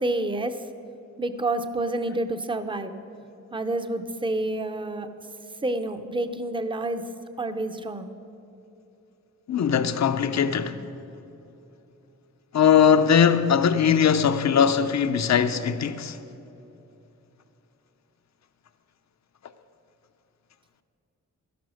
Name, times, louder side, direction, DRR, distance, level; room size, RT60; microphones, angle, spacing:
voice 1, 0.0-0.5 1.2-3.0 3.5-5.1 5.6-7.0 7.4-8.1, right 2 dB, 15° right, 0.6 m, -28 dB
voice 2, 9.5-10.8 12.5-16.2, left 7 dB, 65° left, 0.7 m, -20 dB
13.0 x 11.0 x 6.4 m
wide cardioid pair, 155°, 30 cm